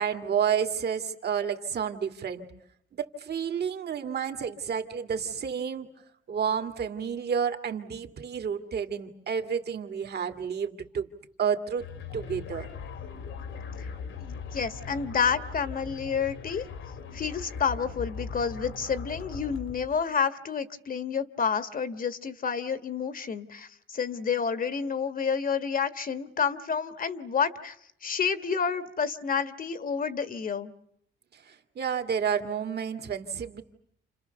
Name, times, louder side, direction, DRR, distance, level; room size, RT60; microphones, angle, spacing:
voice 1, 0.0-2.5 3.0-5.9 6.3-11.1 11.4-11.8 12.1-12.7 31.3-33.6, right 7 dB, 55° right, 7 dB, 2.3 m, -30 dB
sound 1, 11.8-20.0, left 5 dB, 75° left, 2.7 m, -40 dB
voice 2, 14.2-16.6 17.1-27.7 28.0-30.7, left 6 dB, 45° left, 12 dB, 1.5 m, -29 dB
29.5 x 27.5 x 6.9 m, 0.71 s
cardioid pair, 90°, 20 cm